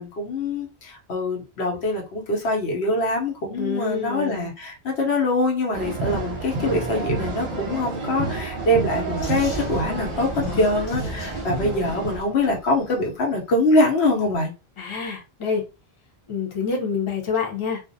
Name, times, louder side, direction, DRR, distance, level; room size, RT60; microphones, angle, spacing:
voice 1, 0.0-14.5, left 1 dB, 80° left, 0 dB, 1.1 m, -24 dB
voice 2, 3.5-4.5 10.4-10.7 14.8-15.7 16.3-17.8, left 5 dB, 35° left, 0 dB, 0.7 m, -27 dB
sound 1, 5.7-12.2, right 3 dB, 45° right, 0.7 m, -29 dB
Vehicle, 9.2-13.1, equal, 60° left, 0.9 m, -38 dB
2.5 x 2.0 x 2.6 m, 0.29 s
omnidirectional pair, 1.1 m